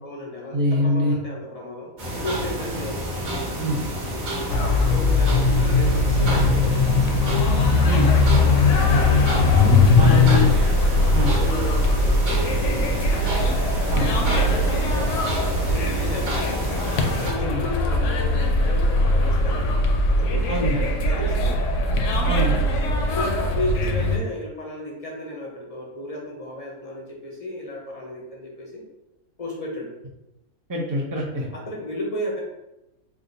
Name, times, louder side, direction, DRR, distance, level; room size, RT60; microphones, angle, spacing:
voice 1, 0.0-3.1 4.3-6.8 8.3-9.3 9.9-10.6 11.3-13.0 13.9-16.7 17.2-19.8 20.1-21.6 23.1-28.8 29.4-29.9 31.5-32.4, left 1 dB, 50° left, -2 dB, 0.4 m, -34 dB
voice 2, 0.5-1.1 3.6-3.8 7.8-8.1 8.9-9.0 9.9-10.5 11.1-11.3 13.9-14.1 17.3-17.6 20.5-20.8 22.2-22.5 30.7-31.5, equal, 30° right, -3 dB, 0.4 m, -24 dB
sound 1, 2.0-17.3, right 1 dB, 50° right, 1.2 m, -29 dB
sound 2, 4.5-24.2, left 2 dB, 70° left, 0.8 m, -20 dB
3.6 x 2.1 x 3.8 m, 0.93 s
omnidirectional pair, 1.5 m